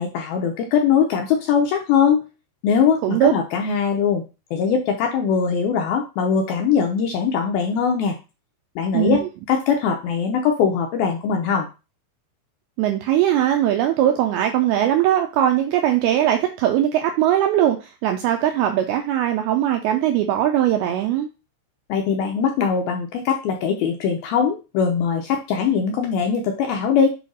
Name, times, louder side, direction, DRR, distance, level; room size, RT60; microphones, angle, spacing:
voice 1, 0.0-2.2 2.6-4.2 4.5-8.2 8.8-11.7 21.9-27.1, left 6 dB, 80° left, 3 dB, 2.2 m, -21 dB
voice 2, 12.8-17.8 18.0-21.3, right 11 dB, 85° right, 5 dB, 2.2 m, -20 dB
7.5 x 2.8 x 5.4 m, 0.30 s
omnidirectional pair, 5.1 m